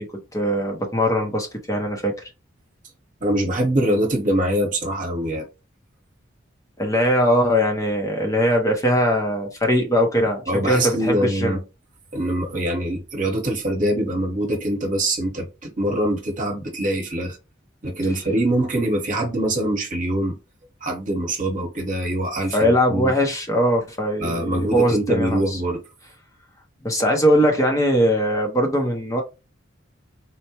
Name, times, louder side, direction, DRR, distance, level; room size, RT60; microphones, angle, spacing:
voice 1, 0.0-2.1 6.8-11.6 22.5-25.6 26.8-29.2, equal, 15° left, 0.6 m, -21 dB
voice 2, 3.2-5.4 10.5-11.6 12.1-17.4 17.8-20.4 20.8-23.1 24.2-25.8, right 1 dB, 40° right, 1.1 m, -23 dB
4.3 x 2.1 x 2.8 m
head